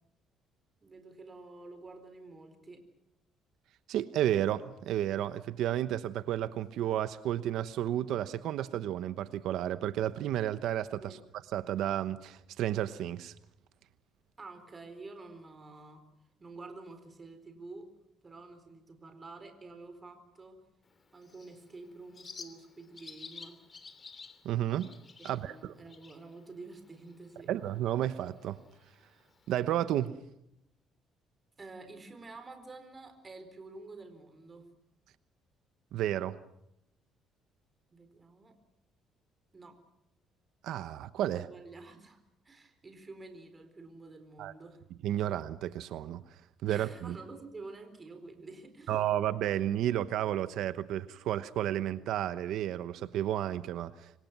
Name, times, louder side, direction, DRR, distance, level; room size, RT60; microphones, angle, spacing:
voice 1, 0.8-2.8 11.0-11.2 14.4-16.0 16.4-17.9 18.2-20.6 21.1-23.6 25.2-27.5 31.6-34.7 37.9-38.6 39.5-39.8 41.3-42.2 42.4-44.8 46.7-49.0, right 3 dB, 25° right, 7 dB, 4.2 m, -49 dB
voice 2, 3.9-11.2 11.5-13.3 24.4-24.9 25.2-25.8 27.5-28.6 29.5-30.1 35.9-36.4 40.6-41.5 44.4-44.5 45.0-47.2 48.9-54.1, right 12 dB, 75° right, 13 dB, 1.0 m, -32 dB
Bird, 20.8-29.8, left 5 dB, 30° left, 2.9 m, -53 dB
26.0 x 25.5 x 6.1 m, 0.81 s
cardioid pair, 125°, 0 cm